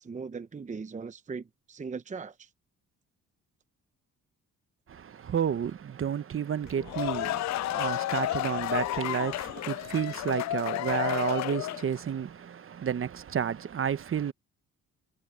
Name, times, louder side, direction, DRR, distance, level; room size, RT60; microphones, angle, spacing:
voice 1, 0.0-2.5, right 5 dB, 25° right, 0.8 m, -39 dB
voice 2, 4.9-14.3, right 8 dB, 45° right, 1.1 m, -31 dB
sound 1, 6.7-12.0, left 15 dB, 65° left, 0.4 m, -31 dB
cardioid pair, 90°, 30 cm